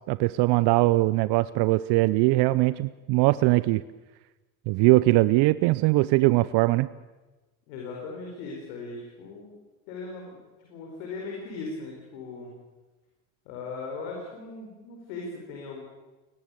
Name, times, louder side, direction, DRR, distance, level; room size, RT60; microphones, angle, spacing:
voice 1, 0.1-3.8 4.7-6.9, right 20 dB, 75° right, 16 dB, 0.7 m, -21 dB
voice 2, 7.7-9.5 9.9-12.5 13.4-15.8, left 3 dB, 85° left, -1 dB, 5.0 m, -38 dB
23.0 x 19.0 x 8.4 m, 1.2 s
hypercardioid pair, 65°, 41 cm